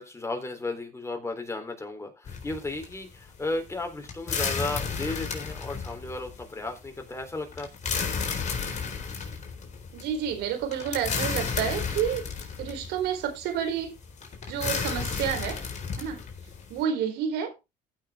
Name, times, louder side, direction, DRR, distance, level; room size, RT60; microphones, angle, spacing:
voice 1, 0.0-7.7, left 2 dB, 15° left, 3.5 m, -34 dB
sound 1, 2.3-16.8, left 5 dB, 45° left, 4.2 m, -33 dB
voice 2, 9.9-12.2 12.6-13.9 14.5-15.6 16.0-16.2 16.7-17.5, right 8 dB, 85° right, 4.1 m, -29 dB
15.0 x 6.3 x 3.6 m
cardioid pair, 110°, 17 cm